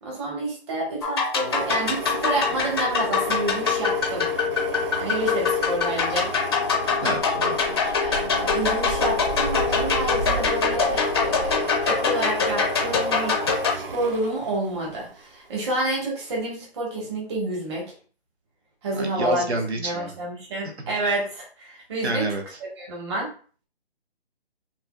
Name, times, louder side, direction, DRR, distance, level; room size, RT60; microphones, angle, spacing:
voice 1, 0.0-4.3 5.0-6.3 8.0-13.4 13.7-17.9 18.8-19.5 19.7-22.4 22.8-23.3, right 1 dB, 25° right, -3 dB, 1.3 m, -29 dB
sound 1, 1.0-13.7, left 5 dB, 25° left, 0.6 m, -24 dB
sound 2, 1.5-15.2 15.6-15.8, right 4 dB, 60° right, 0.7 m, -34 dB
voice 2, 7.0-7.9 18.9-20.1 22.0-22.4, right 2 dB, 85° right, 4 dB, 1.0 m, -28 dB
5.7 x 2.5 x 2.3 m, 0.41 s
figure-of-eight pair, 155°, 32 cm